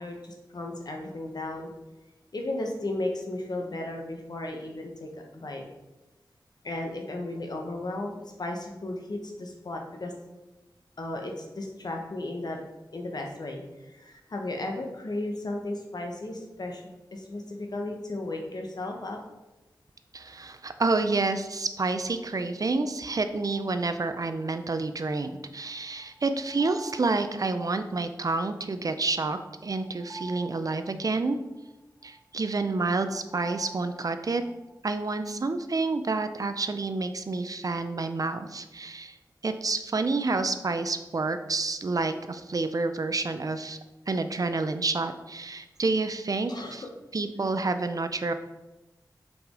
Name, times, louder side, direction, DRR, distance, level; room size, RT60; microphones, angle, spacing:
voice 1, 0.0-1.7 2.3-5.6 6.6-10.1 11.0-12.6 12.9-16.8 17.1-19.2 46.5-46.9, left 2 dB, 65° left, 2 dB, 1.1 m, -35 dB
voice 2, 20.1-31.4 32.0-34.4 34.8-39.1 39.4-43.8 44.1-46.8 47.1-48.3, right 3 dB, 50° right, 9 dB, 0.5 m, -29 dB
sound 1, 23.4-34.7, right 3 dB, ahead, 2.1 m, -49 dB
6.1 x 4.9 x 3.7 m, 1.0 s
wide cardioid pair, 60°, 7 cm